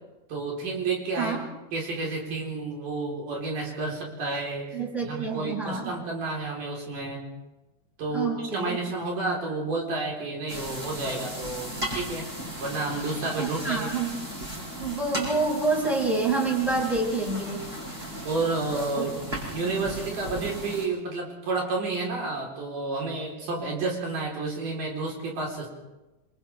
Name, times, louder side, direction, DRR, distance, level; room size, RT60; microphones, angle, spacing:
voice 1, 0.3-1.4 1.7-7.2 8.0-12.3 12.6-13.9 18.2-19.2 19.5-25.7, right 3 dB, 85° right, -2 dB, 5.8 m, -30 dB
voice 2, 4.7-5.9 8.1-8.8 13.4-14.2 14.8-17.7 19.0-19.1, right 3 dB, ahead, -2 dB, 6.1 m, -27 dB
sound 1, 10.5-20.9, equal, 15° right, 7.8 m, -36 dB
27.5 x 27.0 x 3.6 m, 1.1 s
omnidirectional pair, 3.6 m